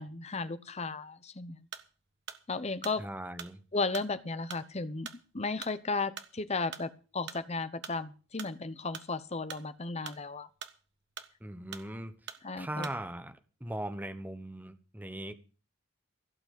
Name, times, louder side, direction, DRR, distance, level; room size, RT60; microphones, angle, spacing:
voice 1, 0.0-1.6 2.5-3.0 3.7-5.1 5.3-10.5 12.4-12.9, left 3 dB, 30° left, 13 dB, 0.8 m, -35 dB
sound 1, 1.6-1.9 2.3-7.5 7.8-9.1 9.4-10.9 11.2-11.9 12.3-12.4 12.8-13.0, right 7 dB, 55° right, 1.3 m, -45 dB
voice 2, 3.0-3.6 11.4-12.1 12.6-13.3 13.6-15.3, right 1 dB, 10° right, 9 dB, 1.1 m, -39 dB
16.5 x 6.0 x 8.3 m, 0.36 s
head